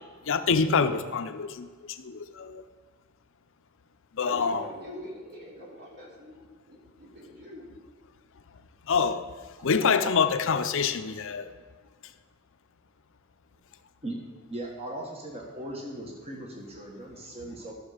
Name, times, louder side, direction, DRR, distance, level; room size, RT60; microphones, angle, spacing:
voice 1, 0.3-2.6 4.1-4.6 8.9-9.2 9.6-11.5, left 5 dB, 65° left, 10 dB, 0.6 m, -26 dB
voice 2, 4.2-7.7 13.5-13.6, equal, 50° right, -3 dB, 3.2 m, -43 dB
voice 3, 9.6-10.1 14.0-14.2 14.5-17.7, right 1 dB, 30° right, -2 dB, 1.4 m, -38 dB
13.5 x 6.4 x 5.0 m, 1.6 s
head